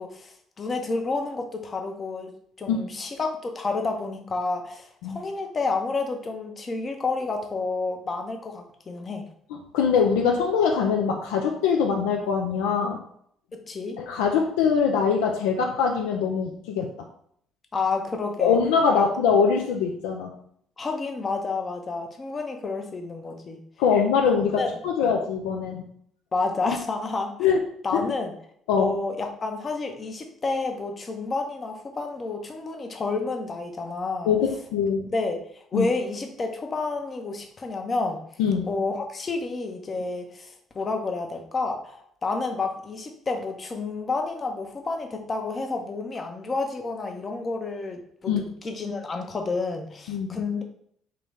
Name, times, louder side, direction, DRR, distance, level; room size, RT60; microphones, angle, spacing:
voice 1, 0.0-9.2 13.5-14.0 17.7-18.6 18.9-19.0 20.8-23.6 24.6-24.7 25.0-25.1 26.3-27.3 27.8-28.3 28.8-34.3 35.0-38.2 38.7-48.3 48.6-50.6, left 3 dB, 35° left, 4 dB, 0.7 m, -30 dB
voice 2, 9.5-13.0 14.0-16.9 18.4-20.4 23.8-25.8 26.7-26.8 27.4-27.6 27.9-28.1 28.7-28.9 34.3-35.1 35.7-35.9 38.4-38.7 48.3-48.4 50.1-50.4, left 6 dB, 70° left, 2 dB, 0.3 m, -23 dB
3.6 x 3.0 x 3.4 m, 0.66 s
figure-of-eight pair, 50°, 0 cm